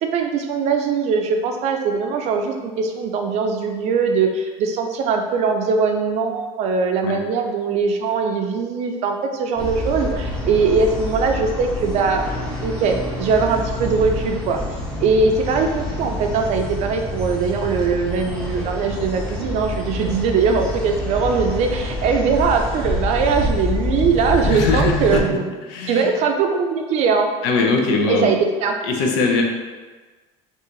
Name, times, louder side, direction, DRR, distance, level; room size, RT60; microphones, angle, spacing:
voice 1, 0.0-12.2 12.6-14.6 15.0-25.5 25.9-27.3 28.1-28.8, right 5 dB, 60° right, 4 dB, 0.5 m, -21 dB
sound 1, 9.6-25.2, left 1 dB, 5° left, 0.7 m, -27 dB
voice 2, 24.3-25.2 25.7-26.1 27.4-28.3 28.8-29.4, left 4 dB, 85° left, 1 dB, 0.6 m, -21 dB
2.7 x 2.4 x 3.8 m, 1.3 s
supercardioid pair, 110°, 13 cm